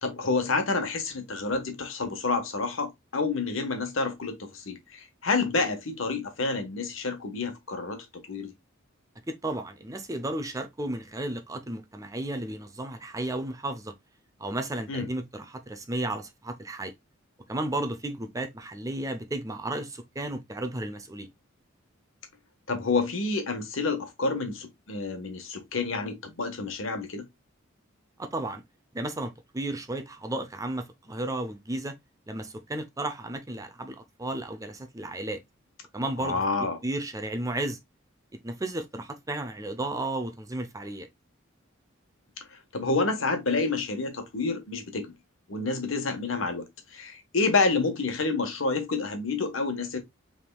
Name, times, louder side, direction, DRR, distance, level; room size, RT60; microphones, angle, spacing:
voice 1, 0.0-8.5 14.9-15.1 22.7-27.2 36.2-36.8 42.5-45.1 45.5-46.6 46.9-50.0, left 3 dB, 70° left, 1.2 m, -29 dB
voice 2, 9.3-13.9 14.4-16.9 17.5-21.3 28.2-28.6 28.9-32.0 32.3-35.4 35.9-36.4 36.8-37.8 38.4-41.1, right 1 dB, 15° right, 0.6 m, -33 dB
5.5 x 3.5 x 2.2 m
head